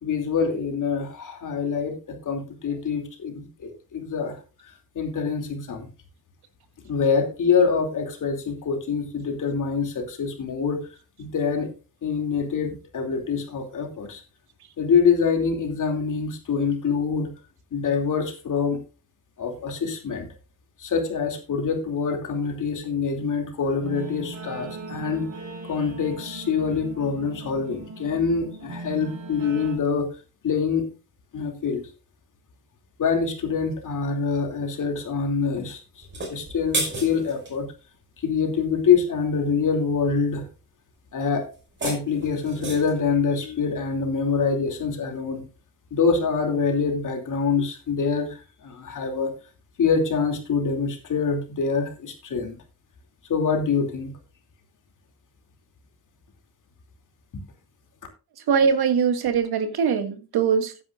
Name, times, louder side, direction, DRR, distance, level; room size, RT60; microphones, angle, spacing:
voice 1, 0.0-4.4 4.6-5.9 6.8-10.8 11.2-11.7 12.0-14.2 14.8-17.3 17.7-18.8 19.4-20.3 20.8-25.3 25.7-30.1 30.4-30.9 31.3-31.9 33.0-37.7 38.2-40.4 41.1-41.5 41.8-45.4 45.9-49.3 49.8-52.6 53.3-54.1, left 5 dB, 55° left, 3 dB, 2.8 m, -25 dB
Guitar, 23.8-29.8, right 2 dB, 50° right, 5.1 m, -39 dB
sound 1, 36.0-37.6 41.5-43.0, right 2 dB, 30° right, 5.6 m, -32 dB
voice 2, 58.5-60.8, right 6 dB, 80° right, 8 dB, 1.9 m, -22 dB
15.0 x 9.9 x 2.5 m, 0.33 s
wide cardioid pair, 170°, 37 cm